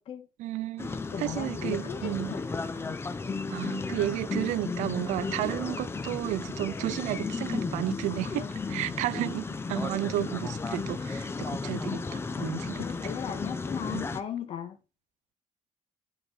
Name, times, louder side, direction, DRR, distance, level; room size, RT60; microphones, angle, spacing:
voice 1, 0.4-2.4 3.5-12.8 13.9-14.0, right 16 dB, 90° right, 0.4 m, -33 dB
sound 1, 0.8-14.2, left 4 dB, 20° left, 0.7 m, -34 dB
voice 2, 0.9-2.4 2.7-2.9 8.4-9.3 12.3-14.8, left 8 dB, 50° left, 1.5 m, -38 dB
11.0 x 4.9 x 4.1 m
cardioid pair, 140°, 12 cm